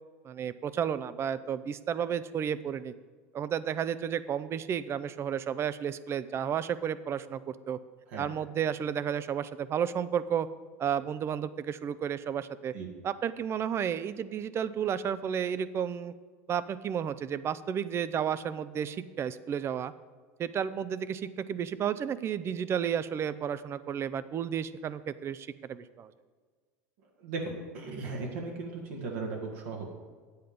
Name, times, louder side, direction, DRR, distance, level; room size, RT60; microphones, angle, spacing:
voice 1, 0.2-2.9 3.3-7.8 8.2-10.5 10.8-12.7 13.0-16.1 16.5-19.9 20.4-26.1, right 8 dB, 35° right, 16 dB, 0.5 m, -32 dB
voice 2, 27.2-29.9, right 3 dB, 75° right, 0 dB, 1.9 m, -37 dB
9.3 x 8.0 x 5.2 m, 1.5 s
supercardioid pair, 105°, 8 cm